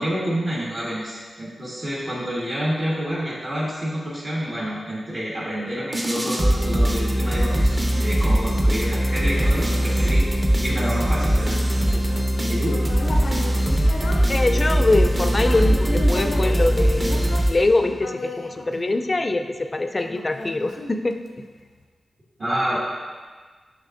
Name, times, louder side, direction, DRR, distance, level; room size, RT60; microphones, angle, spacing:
voice 1, 0.0-10.2 10.6-12.2 12.5-12.7 22.4-22.8, equal, 55° right, -8 dB, 1.5 m, -28 dB
sound 1, 5.9-18.0, equal, 30° right, 0.8 m, -21 dB
Human voice, 12.1-19.4 20.0-21.5, left 2 dB, 85° left, 0.5 m, -34 dB
voice 2, 14.3-21.2, left 2 dB, 35° left, 7 dB, 0.4 m, -23 dB
6.3 x 6.2 x 2.5 m, 1.5 s
cardioid pair, 75°, 0 cm